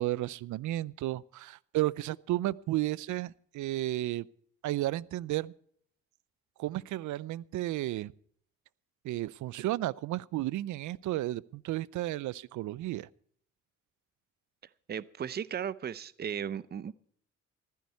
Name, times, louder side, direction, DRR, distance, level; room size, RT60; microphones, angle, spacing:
voice 1, 0.0-4.3 4.6-5.5 6.6-8.1 9.0-13.1, right 16 dB, 75° right, 0.5 m, -33 dB
voice 2, 14.9-16.9, right 8 dB, 35° right, 0.6 m, -36 dB
15.0 x 13.5 x 4.6 m
cardioid pair, 90°, 30 cm